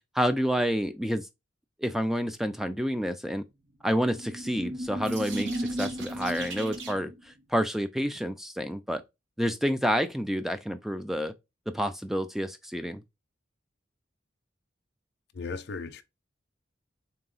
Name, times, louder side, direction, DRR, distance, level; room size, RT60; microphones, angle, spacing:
voice 1, 0.1-1.3 1.8-3.4 3.8-9.0 9.4-11.3 11.7-13.0, equal, ahead, 0.3 m, -29 dB
sound 1, 4.2-7.2, right 1 dB, 70° right, 0.9 m, -34 dB
voice 2, 15.3-16.0, left 4 dB, 55° left, 0.5 m, -36 dB
3.9 x 2.8 x 3.8 m
head